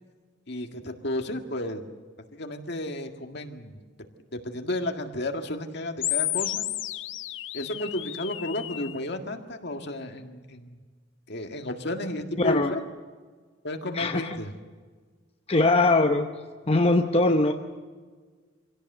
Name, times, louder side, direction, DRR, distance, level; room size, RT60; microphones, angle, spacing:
voice 1, 0.5-1.9 2.3-3.8 4.3-6.7 7.5-10.8 11.3-12.8 13.6-14.5, left 1 dB, 60° left, 5 dB, 1.9 m, -32 dB
sound 1, 6.0-9.0, left 15 dB, 90° left, 0.7 m, -32 dB
voice 2, 12.4-12.7 13.9-14.3 15.5-16.3 16.7-17.5, left 2 dB, 35° left, 4 dB, 0.9 m, -21 dB
25.5 x 17.0 x 7.9 m, 1.5 s
head